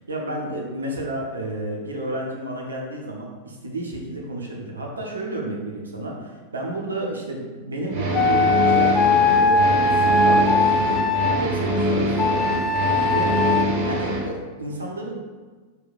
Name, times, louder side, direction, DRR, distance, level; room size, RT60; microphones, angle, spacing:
voice 1, 0.0-11.1 11.4-12.6 13.0-13.3 13.8-15.1, right 1 dB, 75° right, -1 dB, 0.9 m, -31 dB
sound 1, 7.9-14.3, equal, 45° right, 1.0 m, -24 dB
sound 2, 8.1-11.4 12.2-13.7, left 3 dB, 25° left, 0.4 m, -20 dB
4.7 x 2.7 x 4.1 m, 1.4 s
figure-of-eight pair, 90°, 0 cm